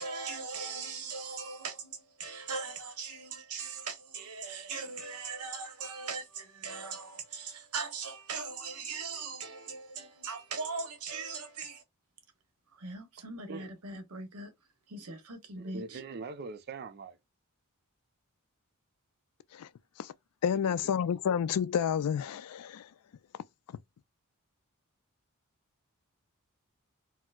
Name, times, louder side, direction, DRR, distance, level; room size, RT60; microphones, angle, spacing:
voice 1, 0.0-11.8 12.7-14.5 14.9-16.0, right 4 dB, 80° right, 0.9 m, -40 dB
voice 2, 15.6-17.2 20.7-20.8, right 4 dB, 45° right, 0.4 m, -42 dB
voice 3, 20.4-22.9, left 8 dB, 80° left, 0.3 m, -30 dB
4.3 x 2.0 x 2.3 m
head